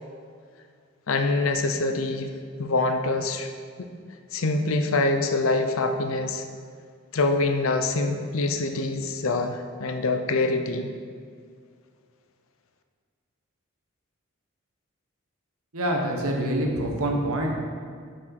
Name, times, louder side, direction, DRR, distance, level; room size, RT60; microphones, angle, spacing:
voice 1, 1.1-2.3 2.6-3.5 3.8-3.9 4.3-6.4 7.1-10.9, left 3 dB, 70° left, 6 dB, 0.6 m, -25 dB
voice 2, 15.7-17.7, right 1 dB, 85° right, 1 dB, 1.1 m, -26 dB
6.0 x 4.9 x 5.9 m, 2.1 s
head